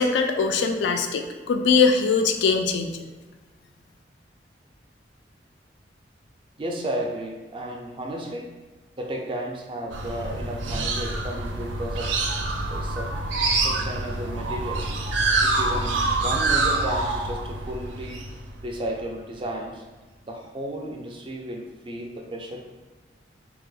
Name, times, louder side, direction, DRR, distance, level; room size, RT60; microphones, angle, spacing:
voice 1, 0.0-3.0, left 5 dB, 75° left, 5 dB, 0.3 m, -21 dB
voice 2, 6.6-8.5 9.0-12.1 12.7-13.1 13.5-14.9 15.4-18.2 18.6-19.8 20.2-22.7, right 1 dB, 30° right, 1 dB, 0.4 m, -33 dB
sound 1, 9.9-19.0, right 3 dB, 90° right, 0.4 m, -26 dB
2.8 x 2.0 x 3.8 m, 1.2 s
head